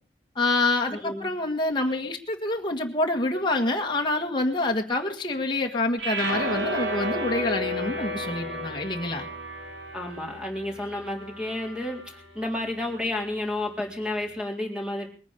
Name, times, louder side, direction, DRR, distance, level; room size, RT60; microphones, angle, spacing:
voice 1, 0.4-9.3, left 2 dB, 25° left, 1 dB, 1.7 m, -27 dB
voice 2, 0.9-1.3 9.9-15.1, left 1 dB, 5° right, 2 dB, 3.8 m, -31 dB
sound 1, 6.0-12.3, equal, 90° right, 3.7 m, -32 dB
21.0 x 9.5 x 6.8 m, 0.40 s
head